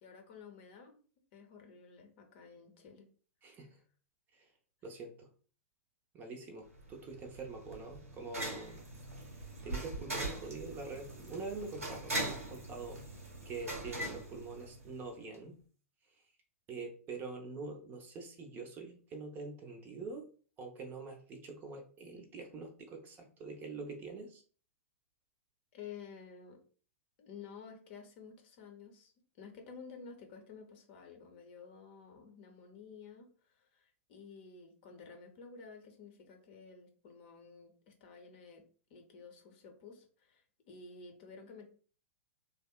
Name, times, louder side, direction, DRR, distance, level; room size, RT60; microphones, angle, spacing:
voice 1, 0.0-1.0 1.3-3.1 25.7-26.6 27.2-29.1 29.4-38.6 38.9-41.7, left 5 dB, 50° left, 4 dB, 0.7 m, -52 dB
voice 2, 3.4-3.8 4.3-4.5 4.8-5.3 6.1-8.8 9.3-13.0 13.4-15.6 16.7-20.3 20.6-24.4, right 3 dB, 25° right, 3 dB, 0.5 m, -45 dB
sound 1, 6.8-15.1, right 1 dB, 90° right, 0.8 m, -41 dB
2.7 x 2.0 x 2.2 m, 0.41 s
hypercardioid pair, 110°, 8 cm